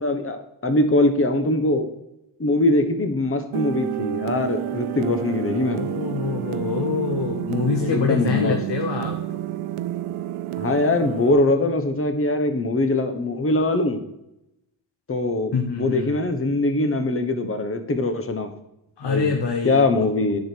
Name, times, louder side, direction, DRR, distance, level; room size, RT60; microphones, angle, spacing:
voice 1, 0.0-1.9 2.4-5.8 7.8-8.6 10.6-14.0 15.1-18.5 19.0-19.3 19.6-20.4, left 2 dB, 25° left, 8 dB, 1.3 m, -22 dB
sound 1, 3.5-11.3, right 13 dB, 90° right, 0.7 m, -29 dB
voice 2, 5.7-9.2 15.5-16.2 19.0-20.0, left 5 dB, 55° left, 4 dB, 1.4 m, -25 dB
10.0 x 6.7 x 6.2 m, 0.85 s
cardioid pair, 90°, 49 cm